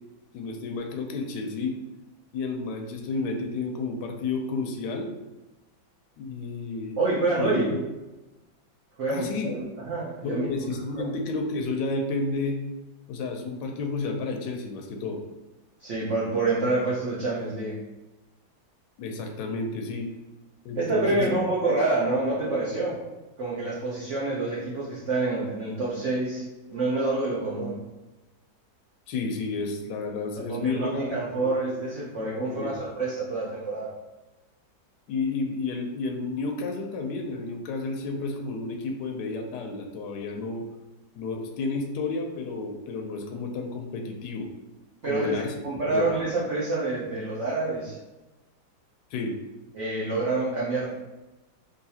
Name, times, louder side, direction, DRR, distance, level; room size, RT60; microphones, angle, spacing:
voice 1, 0.3-1.8 2.3-5.1 6.2-7.0 7.4-7.8 9.1-9.5 10.2-12.6 13.1-15.2 19.0-20.1 20.6-21.3 29.1-31.5 32.5-32.7 35.1-40.7 41.1-44.5 45.0-45.5 45.9-46.1 49.1-49.3, left 3 dB, 75° left, 3 dB, 1.0 m, -31 dB
voice 2, 7.0-7.7 9.0-10.5 11.0-11.1 15.8-17.8 20.7-23.0 23.4-26.4 26.7-27.7 30.4-33.9 45.0-48.0 49.7-50.9, right 2 dB, 65° right, -7 dB, 0.7 m, -27 dB
3.9 x 2.6 x 2.7 m, 1.0 s
omnidirectional pair, 2.1 m